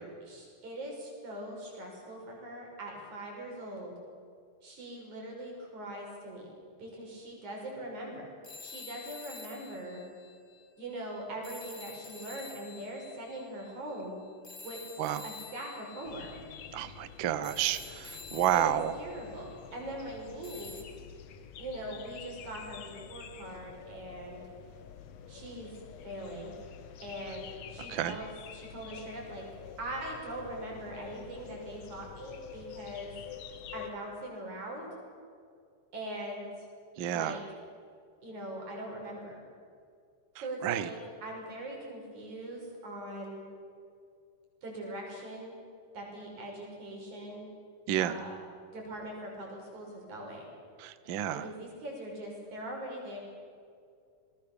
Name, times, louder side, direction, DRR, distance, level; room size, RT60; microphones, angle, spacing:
voice 1, 0.2-3.9 4.6-8.3 8.6-10.0 10.8-14.2 14.6-14.8 15.2-16.3 18.5-20.8 21.6-24.4 25.3-25.8 26.0-26.5 27.0-29.4 29.8-33.1 33.7-34.9 35.9-36.7 37.1-37.4 38.2-39.4 40.4-43.4 44.6-45.5 45.9-47.5 48.0-48.4 48.7-50.4 51.3-53.2, right 1 dB, 60° right, 0 dB, 7.4 m, -41 dB
sound 1, 8.4-10.9 11.4-19.9 20.4-20.8, left 4 dB, 25° left, 1.3 m, -49 dB
sound 2, 16.0-33.9, left 8 dB, 60° left, 2.3 m, -48 dB
voice 2, 16.7-18.9 27.9-28.1 37.0-37.4 40.6-40.9 47.9-48.1 50.8-51.4, right 11 dB, 85° right, 13 dB, 1.0 m, -30 dB
29.5 x 21.0 x 7.1 m, 2.3 s
omnidirectional pair, 3.7 m